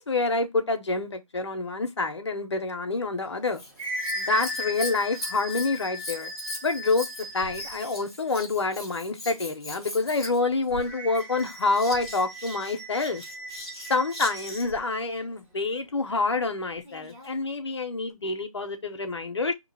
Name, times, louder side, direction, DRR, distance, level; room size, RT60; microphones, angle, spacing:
voice 1, 0.0-3.6 4.2-6.3 6.6-7.1 7.3-13.2 13.9-19.5, left 3 dB, 50° left, 0.7 m, -27 dB
sound 1, 3.3-8.0 10.8-14.8, left 1 dB, 20° right, 1.1 m, -37 dB
Scissors, 3.5-14.8 16.8-17.4 18.1-18.2, left 1 dB, 10° left, 0.5 m, -40 dB
2.8 x 2.3 x 4.0 m
figure-of-eight pair, 165°, 19 cm